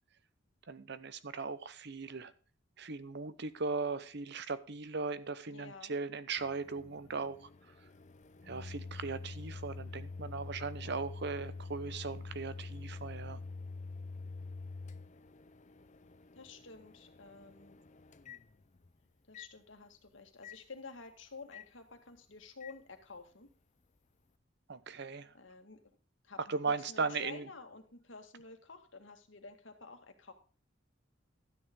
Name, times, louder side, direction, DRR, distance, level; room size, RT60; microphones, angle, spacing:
voice 1, 0.7-2.3 2.8-7.5 8.4-13.4 24.7-25.3 26.4-27.5, right 4 dB, 60° right, 0.9 m, -38 dB
voice 2, 5.5-5.9 16.3-17.8 19.3-23.5 25.3-25.8 26.2-30.3, left 4 dB, 80° left, 2.0 m, -51 dB
Microwave oven, 6.4-18.9 19.3-19.5 20.4-20.6 21.5-21.7 22.6-22.8, left 3 dB, 40° left, 0.6 m, -46 dB
13.0 x 9.3 x 3.7 m
head